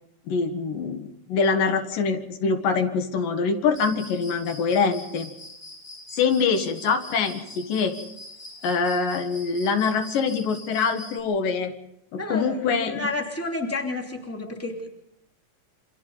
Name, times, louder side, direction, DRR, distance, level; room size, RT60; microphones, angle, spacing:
voice 1, 0.3-5.3 6.1-8.0 8.6-11.7 12.1-13.1, left 5 dB, 85° left, 7 dB, 3.3 m, -24 dB
Cricket, 3.8-11.2, left 1 dB, 25° left, 3.1 m, -43 dB
voice 2, 12.2-14.9, left 2 dB, 5° left, 1 dB, 2.7 m, -31 dB
28.0 x 26.0 x 4.1 m, 0.80 s
omnidirectional pair, 3.8 m